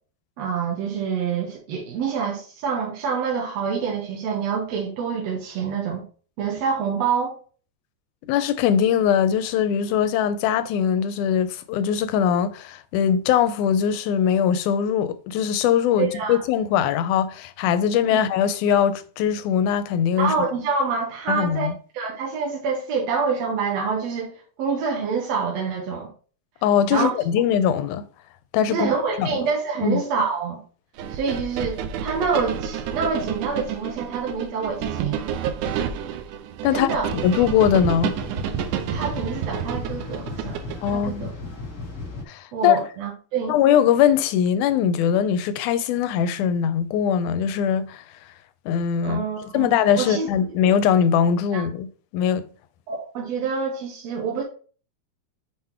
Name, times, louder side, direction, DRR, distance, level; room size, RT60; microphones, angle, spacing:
voice 1, 0.4-6.0 6.4-7.4 16.0-16.4 18.1-18.2 20.2-21.7 21.9-26.1 26.9-27.1 28.7-30.6 31.1-35.2 36.7-37.1 38.9-40.6 40.9-41.3 42.5-43.5 49.0-49.7 50.0-50.3 51.5-51.6 52.9-54.4, right 5 dB, 65° right, 1.9 m, -26 dB
voice 2, 8.3-20.3 21.3-21.7 26.6-28.0 28.5-29.3 29.8-30.0 36.6-38.1 40.8-41.3 42.3-42.8 43.5-48.0 48.7-49.2 49.5-51.9 52.1-52.5, left 8 dB, 85° left, 2.0 m, -21 dB
sound 1, 31.0-40.9, right 8 dB, 85° right, 2.1 m, -30 dB
sound 2, 37.2-42.2, left 3 dB, 45° left, 1.1 m, -35 dB
5.9 x 3.7 x 4.3 m
omnidirectional pair, 3.5 m